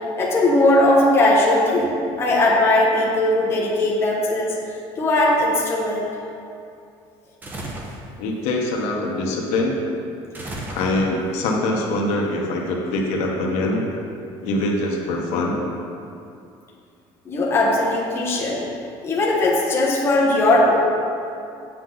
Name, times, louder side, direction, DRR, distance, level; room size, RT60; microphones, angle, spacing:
voice 1, 0.2-4.5 5.0-6.1 17.2-18.6 19.0-20.8, left 1 dB, 20° left, -4 dB, 1.2 m, -18 dB
sound 1, 7.4-8.0 10.3-11.3, right 1 dB, 15° right, 0.8 m, -33 dB
voice 2, 8.2-9.8 10.7-13.9 14.4-15.6, left 2 dB, 75° left, -1 dB, 1.2 m, -23 dB
7.7 x 7.5 x 3.9 m, 2.5 s
cardioid pair, 175°, 11 cm